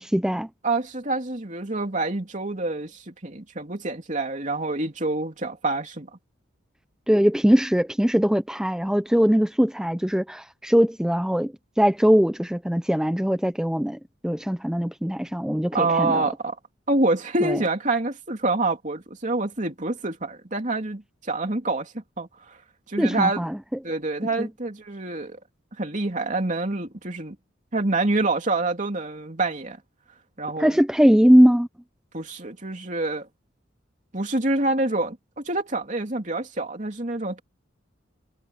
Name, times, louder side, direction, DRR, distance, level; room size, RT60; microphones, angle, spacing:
voice 1, 0.0-0.5 7.1-11.5 11.8-14.0 14.2-16.2 17.4-17.6 23.0-23.6 24.4-24.5 30.6-31.7, equal, 5° right, 0.5 m, -20 dB
voice 2, 0.6-6.1 15.7-16.6 16.9-22.6 22.9-23.5 23.8-25.4 25.8-27.3 27.7-29.8 30.4-30.8 32.1-33.3 34.1-37.4, right 2 dB, 40° right, 3.0 m, -27 dB
head